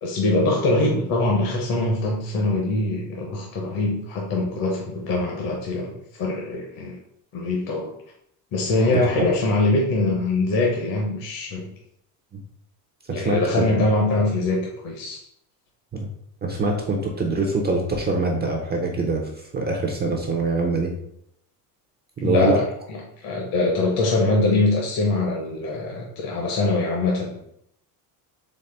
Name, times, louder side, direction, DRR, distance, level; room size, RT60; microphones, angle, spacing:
voice 1, 0.0-7.0 7.3-7.9 8.5-11.7 13.1-15.2 22.2-22.6 23.2-27.4, left 2 dB, 50° left, -1 dB, 0.9 m, -23 dB
voice 2, 13.1-13.7 15.9-16.1 16.4-20.9 22.2-22.6, right 2 dB, 20° right, 1 dB, 0.5 m, -24 dB
4.2 x 3.2 x 3.3 m, 0.74 s
cardioid pair, 125°, 47 cm